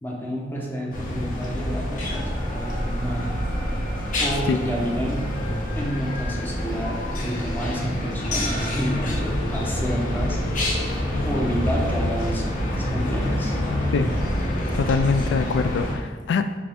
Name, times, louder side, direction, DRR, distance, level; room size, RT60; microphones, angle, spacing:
voice 1, 0.0-3.3 4.2-5.3 5.8-10.4 11.2-13.5, equal, 10° left, -3 dB, 0.6 m, -30 dB
sound 1, 0.9-16.0, left 1 dB, 45° left, 0.9 m, -27 dB
sound 2, 1.9-11.1, right 1 dB, 65° right, 0.6 m, -35 dB
voice 2, 14.7-16.6, left 5 dB, 75° left, 9 dB, 0.3 m, -23 dB
5.7 x 2.5 x 3.4 m, 1.4 s
head